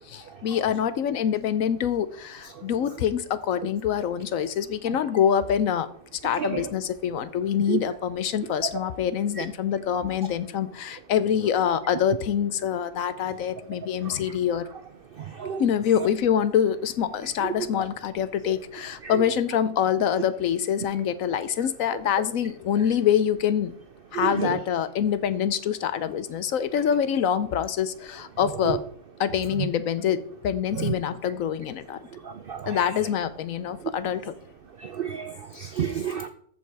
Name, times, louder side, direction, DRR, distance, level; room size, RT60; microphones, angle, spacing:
voice 1, 0.1-14.7 15.6-23.8 24.1-28.8 29.2-32.0 32.7-34.3, left 9 dB, 65° left, 14 dB, 0.9 m, -25 dB
voice 2, 6.4-6.7 7.7-7.8 9.4-9.5 14.0-14.1 15.2-15.6 18.4-18.5 19.0-19.1 24.1-24.6 28.6-28.8 30.8-30.9 32.2-32.8 34.8-36.3, right 8 dB, 90° right, 9 dB, 0.4 m, -30 dB
14.0 x 5.4 x 4.6 m, 0.62 s
omnidirectional pair, 1.7 m